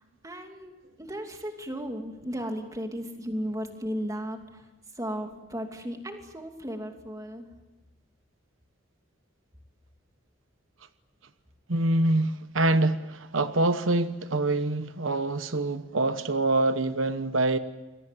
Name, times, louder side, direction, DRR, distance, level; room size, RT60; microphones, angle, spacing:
voice 1, 0.2-0.7 1.0-4.4 5.0-7.5, equal, 15° right, 2.8 m, -35 dB
voice 2, 11.7-17.6, right 2 dB, 80° right, 1.1 m, -25 dB
28.0 x 22.0 x 7.6 m
head